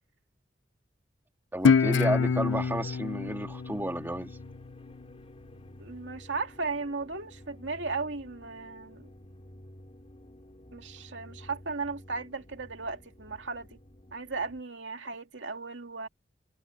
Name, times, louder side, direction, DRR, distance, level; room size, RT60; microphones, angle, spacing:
voice 1, 1.5-4.4, right 1 dB, 10° right, 2.3 m, -32 dB
Guitar, 1.6-4.9, left 5 dB, 75° left, 0.5 m, -26 dB
sound 1, 2.1-14.6, left 1 dB, 35° left, 3.1 m, -51 dB
voice 2, 5.8-9.1 10.7-13.7 14.1-16.1, right 4 dB, 75° right, 2.5 m, -36 dB
head